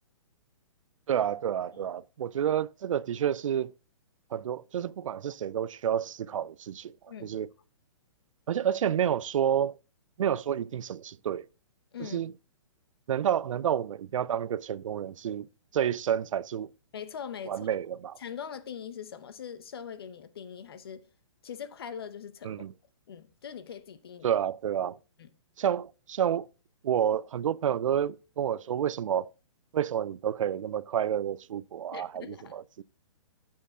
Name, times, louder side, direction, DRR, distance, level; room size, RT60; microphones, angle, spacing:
voice 1, 1.1-3.7 4.3-6.9 7.2-7.5 8.5-9.8 10.2-11.4 12.0-12.3 13.1-15.5 15.7-16.7 17.5-18.2 22.4-22.7 24.2-25.0 25.6-26.5 26.8-29.3 29.7-32.8, right 9 dB, 75° right, 0.4 m, -29 dB
voice 2, 7.1-7.4 11.9-12.2 16.9-17.7 18.2-21.0 21.4-22.6 23.1-24.4 25.2-25.3 31.9-32.6, left 8 dB, 45° left, 0.7 m, -42 dB
8.5 x 7.4 x 3.6 m
hypercardioid pair, 180°, 17 cm